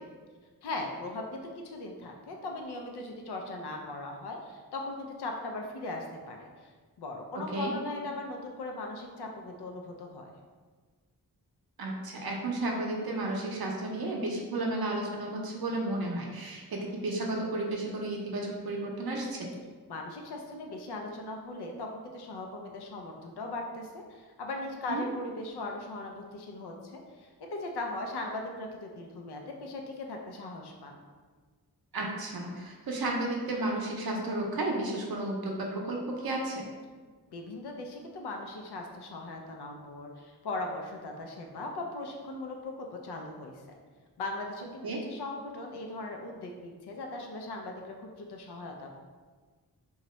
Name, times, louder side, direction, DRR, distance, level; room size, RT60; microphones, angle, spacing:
voice 1, 0.6-6.7 7.0-10.3 19.9-31.0 37.3-43.6 44.2-49.0, left 2 dB, 80° left, 2 dB, 0.6 m, -39 dB
voice 2, 11.8-19.5 24.9-25.1 31.9-36.6 44.8-45.0, right 2 dB, 65° right, -1 dB, 0.6 m, -33 dB
2.8 x 2.3 x 3.0 m, 1.5 s
cardioid pair, 45°, 39 cm